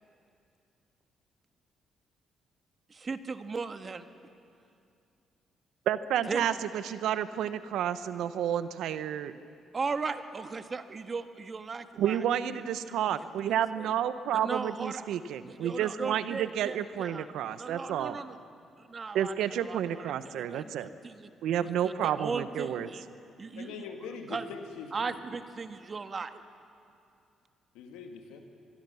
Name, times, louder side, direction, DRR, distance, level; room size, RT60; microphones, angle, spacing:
voice 1, 2.9-4.1 6.3-6.5 9.7-12.2 12.5-12.6 13.2-13.9 14.4-15.2 15.5-17.3 17.6-18.4 18.8-21.3 21.6-23.1 23.4-23.8 24.3-24.4 24.9-26.4, right 4 dB, 40° right, 9 dB, 1.4 m, -37 dB
voice 2, 5.9-9.3 12.0-18.2 19.1-20.9 21.4-22.9, right 10 dB, 75° right, 13 dB, 0.9 m, -30 dB
voice 3, 23.6-25.1 27.7-28.4, left 5 dB, 90° left, 4 dB, 2.4 m, -42 dB
25.5 x 21.5 x 7.1 m, 2.5 s
supercardioid pair, 65°, 0 cm